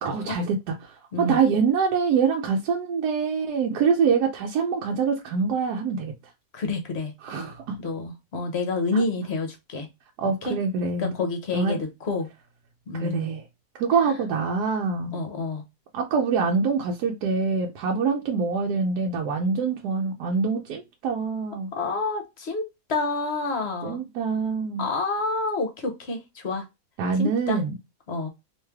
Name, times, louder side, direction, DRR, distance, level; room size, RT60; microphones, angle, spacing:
voice 1, 0.0-6.1 7.2-7.8 8.9-9.0 10.2-11.1 11.5-11.8 12.9-13.4 13.8-15.2 15.9-21.7 23.8-24.9 27.0-27.7, right 5 dB, 85° right, 1.2 m, -25 dB
voice 2, 6.5-7.1 7.8-9.9 10.4-10.6 11.0-12.3 12.9-13.3 14.0-14.1 15.1-15.6 21.7-24.0 24.8-26.7 27.2-27.6 28.1-28.3, left 3 dB, 50° left, 1.0 m, -28 dB
3.2 x 3.0 x 3.4 m
omnidirectional pair, 1.7 m